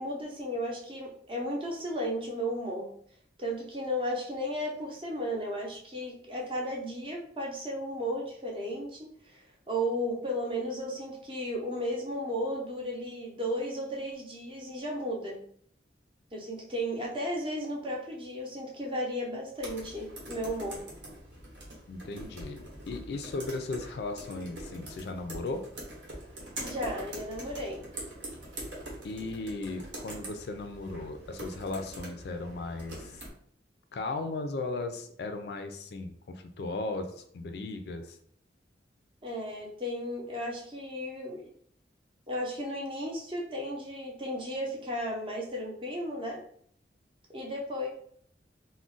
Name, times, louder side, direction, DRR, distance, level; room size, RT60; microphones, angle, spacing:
voice 1, 0.0-2.9 3.4-15.4 16.3-20.8 26.6-27.8 39.2-41.4 42.3-46.4 47.3-47.9, equal, 30° right, -1 dB, 0.6 m, -34 dB
sound 1, 19.6-33.3, right 1 dB, 80° right, 1.0 m, -44 dB
voice 2, 21.9-25.6 29.0-33.2 33.9-38.2, left 3 dB, 60° left, 7 dB, 0.3 m, -36 dB
2.4 x 2.1 x 3.8 m, 0.62 s
head